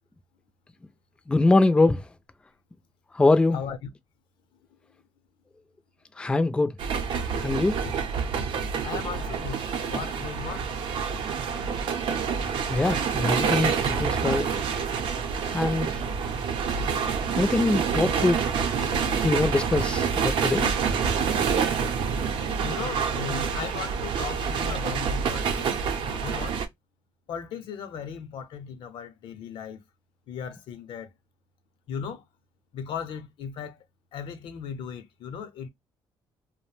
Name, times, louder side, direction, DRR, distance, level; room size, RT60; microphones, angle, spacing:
voice 1, 1.3-2.0 3.1-3.6 6.2-6.7 7.4-7.8 12.4-14.5 15.5-16.0 17.4-18.4 19.2-20.7, left 2 dB, 10° left, 0.3 m, -23 dB
voice 2, 3.5-3.9 8.8-9.6 9.9-10.7 12.4-12.7 21.5-22.0 22.6-25.7 26.1-26.6 27.3-29.8 30.3-31.1 31.9-32.2 32.7-33.8 34.1-35.7, left 7 dB, 75° left, 0.6 m, -37 dB
sound 1, 6.8-26.7, right 6 dB, 70° right, 0.6 m, -27 dB
2.4 x 2.1 x 3.1 m
cardioid pair, 100°, 9 cm